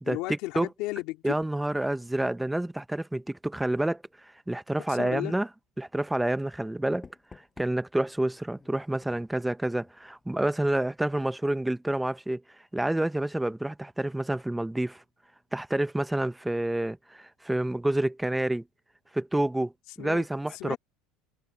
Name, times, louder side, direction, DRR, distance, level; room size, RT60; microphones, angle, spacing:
voice 1, 0.0-1.4 4.9-5.3 20.0-20.3 20.5-20.8, left 20 dB, 55° left, 3.1 m, -34 dB
voice 2, 1.2-5.5 5.8-7.1 7.3-12.4 12.7-15.0 15.5-18.6 19.1-19.7 20.0-20.8, right 1 dB, 5° right, 0.6 m, -28 dB
Knock, 7.0-10.5 10.8-11.2, left 4 dB, 15° left, 6.3 m, -54 dB
cardioid pair, 170°, 0 cm